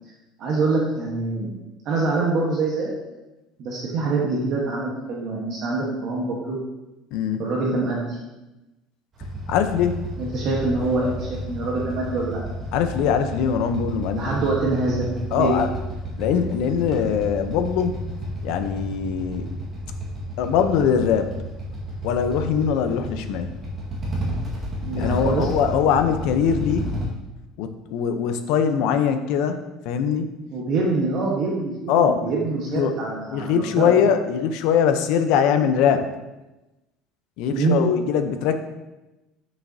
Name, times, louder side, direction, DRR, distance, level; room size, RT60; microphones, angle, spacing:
voice 1, 0.4-1.5 1.8-2.9 3.6-6.6 7.4-8.2 10.2-12.4 14.1-15.6 24.8-25.5 30.5-33.9 37.5-37.8, right 3 dB, 40° right, -4 dB, 1.2 m, -25 dB
voice 2, 7.1-7.4 9.5-10.1 12.7-14.3 15.3-15.7 16.2-18.0 18.4-19.5 20.4-21.3 22.0-23.6 24.9-26.9 27.6-29.6 29.8-30.3 31.9-32.2 32.7-36.0 37.4-38.6, left 7 dB, 60° left, 8 dB, 0.7 m, -22 dB
Motorcycle / Idling, 9.2-27.1, equal, 20° right, 1.6 m, -31 dB
8.8 x 6.4 x 2.7 m, 1.0 s
cardioid pair, 175°, 0 cm